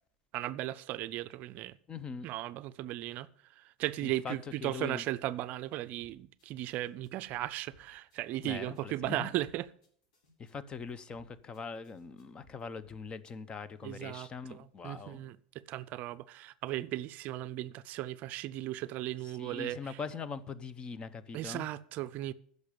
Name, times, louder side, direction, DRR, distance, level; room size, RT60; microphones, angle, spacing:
voice 1, 0.3-1.8 2.2-9.7 13.8-20.0 21.3-22.3, right 15 dB, 50° right, 0.5 m, -37 dB
voice 2, 1.9-2.3 4.2-4.4 4.6-5.0 8.4-9.3 10.4-15.2 19.4-21.7, left 5 dB, 25° left, 0.8 m, -42 dB
sound 1, 5.9-13.3, left 1 dB, 80° left, 4.6 m, -64 dB
10.0 x 6.6 x 8.5 m
supercardioid pair, 115°, 4 cm